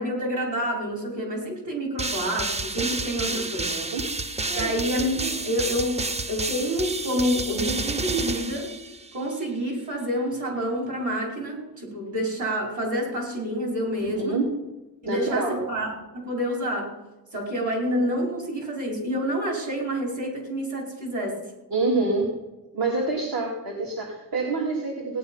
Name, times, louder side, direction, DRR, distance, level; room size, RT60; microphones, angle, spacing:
voice 1, 0.0-3.7 4.5-6.0 6.3-8.7 9.1-14.4 15.0-16.9 17.3-21.4, equal, 50° right, -1 dB, 4.9 m, -28 dB
sound 1, 2.0-9.3, right 2 dB, 15° right, 0.5 m, -30 dB
voice 2, 3.3-4.1 4.5-4.7 14.0-14.5 15.0-15.6 21.7-22.3 22.7-25.2, right 3 dB, 65° right, -1 dB, 2.5 m, -27 dB
17.0 x 10.0 x 5.6 m, 1.1 s
wide cardioid pair, 155°, 38 cm